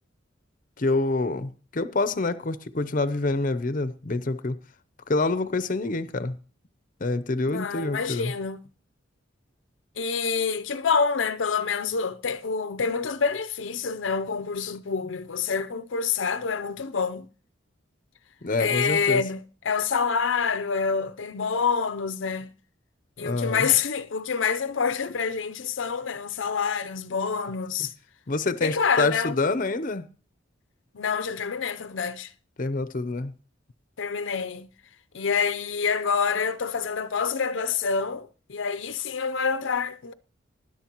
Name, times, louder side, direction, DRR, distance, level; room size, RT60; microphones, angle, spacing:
voice 1, 0.8-4.6 5.1-6.3 7.0-8.3 18.4-19.2 23.2-23.7 28.3-30.1 32.6-33.3, left 3 dB, 45° left, 0.7 m, -27 dB
voice 2, 7.5-8.6 10.0-17.3 18.6-22.5 23.2-27.9 28.6-29.4 30.9-32.3 34.0-34.7 35.1-40.1, left 6 dB, 80° left, 0.6 m, -27 dB
19.5 x 11.0 x 3.0 m
head